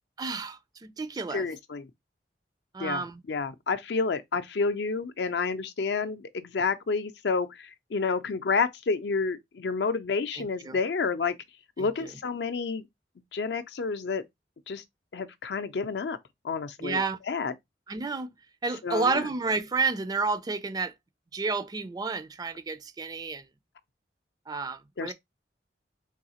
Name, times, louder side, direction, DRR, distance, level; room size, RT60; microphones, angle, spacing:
voice 1, 0.2-1.5 2.7-3.2 10.4-10.8 11.8-12.1 16.8-17.2 17.9-18.3 18.6-20.9 21.3-23.4 24.5-25.1, right 4 dB, 20° right, 0.3 m, -31 dB
voice 2, 1.3-1.9 2.8-11.3 11.8-12.8 13.3-14.2 14.7-14.8 15.1-16.2 16.4-17.0 17.3-17.5 18.8-19.2 25.0-25.1, left 4 dB, 70° left, 0.5 m, -29 dB
3.9 x 2.7 x 2.8 m
head